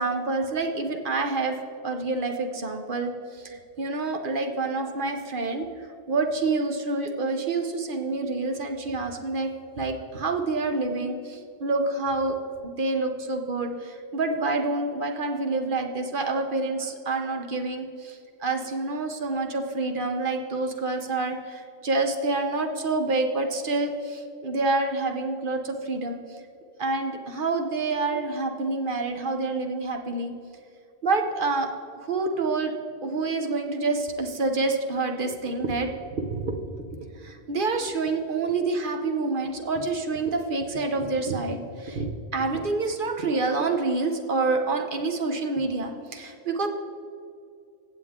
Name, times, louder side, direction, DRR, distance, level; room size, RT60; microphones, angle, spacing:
voice 1, 0.0-1.6 1.8-5.7 6.1-9.5 9.8-12.4 12.6-26.2 26.8-30.3 31.0-31.7 32.0-32.7 33.0-46.7, right 3 dB, 45° right, 4 dB, 1.0 m, -27 dB
15.5 x 7.6 x 3.6 m, 2.5 s
omnidirectional pair, 1.3 m